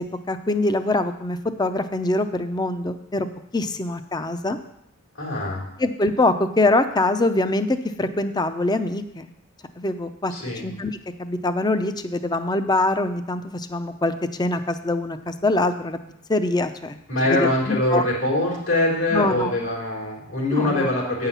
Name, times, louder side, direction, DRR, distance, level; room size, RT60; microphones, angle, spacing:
voice 1, 0.0-3.3 3.5-4.6 5.8-9.3 9.8-10.3 10.6-10.9 11.2-14.1 14.4-16.0 16.3-17.0 17.3-18.0 19.1-19.5 20.5-20.9, left 2 dB, 20° left, 10 dB, 0.5 m, -23 dB
voice 2, 5.2-5.7 10.3-10.6 17.1-21.3, left 1 dB, 75° left, -3 dB, 3.8 m, -23 dB
9.0 x 5.7 x 7.0 m, 0.77 s
head